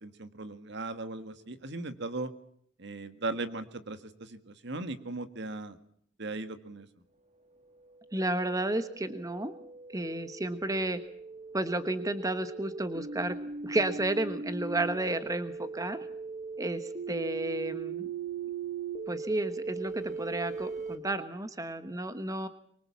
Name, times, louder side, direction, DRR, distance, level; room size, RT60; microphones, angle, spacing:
voice 1, 0.0-2.3 2.8-5.8 6.2-6.9, right 2 dB, 60° right, 10 dB, 1.9 m, -38 dB
sound 1, 7.7-21.0, right 5 dB, 35° right, 2.1 m, -40 dB
voice 2, 8.1-9.5 9.9-11.0 11.5-13.4 13.6-16.0 16.6-18.1 19.1-22.5, right 1 dB, 20° right, 11 dB, 1.2 m, -32 dB
24.0 x 24.0 x 7.3 m, 0.67 s
head